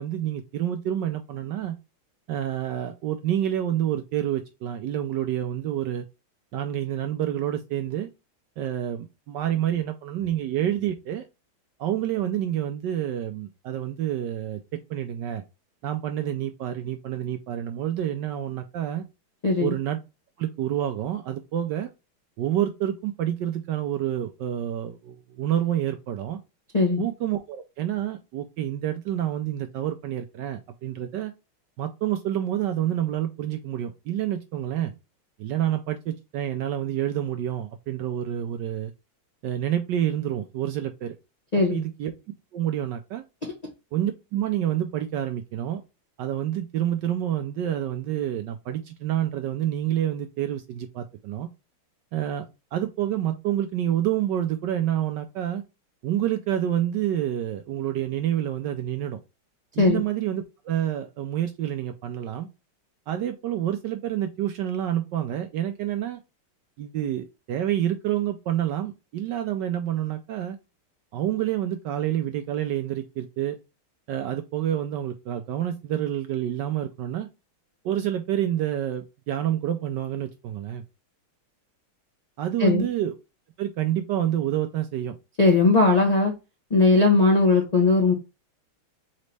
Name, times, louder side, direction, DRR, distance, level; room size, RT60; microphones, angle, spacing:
voice 1, 0.0-1.8 2.3-6.0 6.5-8.1 8.6-11.2 11.8-15.4 15.8-19.0 19.6-20.0 20.4-21.9 22.4-26.4 27.0-31.3 31.8-34.9 35.4-38.9 39.4-41.2 41.7-42.1 42.5-43.2 43.9-45.8 46.2-51.5 52.1-52.5 52.7-55.6 56.0-59.2 59.7-62.5 63.1-66.2 66.8-70.6 71.1-73.6 74.1-77.3 77.8-80.8 82.4-83.1 83.6-85.1, right 11 dB, 75° right, 1.0 m, -28 dB
voice 2, 19.4-19.7 26.7-27.1 41.5-41.8 43.4-43.5 59.8-60.0 82.6-82.9 85.4-86.3 86.7-88.1, left 3 dB, 75° left, 0.3 m, -19 dB
4.2 x 3.9 x 3.2 m
omnidirectional pair, 2.3 m